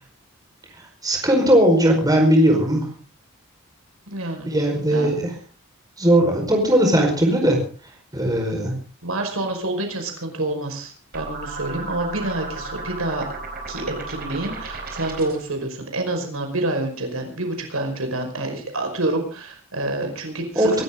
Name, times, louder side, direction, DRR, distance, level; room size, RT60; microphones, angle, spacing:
voice 1, 1.0-2.9 4.5-5.3 6.0-7.6 8.1-8.8 20.5-20.8, right 1 dB, 20° right, 2 dB, 4.9 m, -18 dB
voice 2, 4.1-4.5 4.9-5.1 9.0-13.3 13.7-20.7, right 2 dB, 85° right, 4 dB, 5.4 m, -27 dB
sound 1, 11.1-15.5, right 3 dB, 45° right, 4.5 m, -34 dB
25.0 x 13.0 x 3.9 m, 0.38 s
head